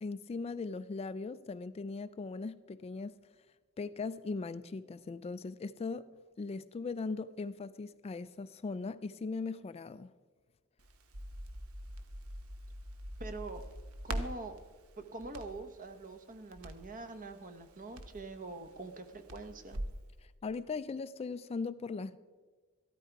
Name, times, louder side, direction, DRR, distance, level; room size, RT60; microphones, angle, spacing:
voice 1, 0.0-3.2 3.8-6.1 6.4-10.1 20.2-22.2, left 4 dB, 25° left, 0.3 m, -39 dB
Crackle, 10.8-20.0, right 1 dB, 70° right, 1.1 m, -44 dB
voice 2, 13.2-13.6 14.0-14.6 15.0-19.8, right 2 dB, 40° right, 1.0 m, -44 dB
14.0 x 12.5 x 4.6 m
head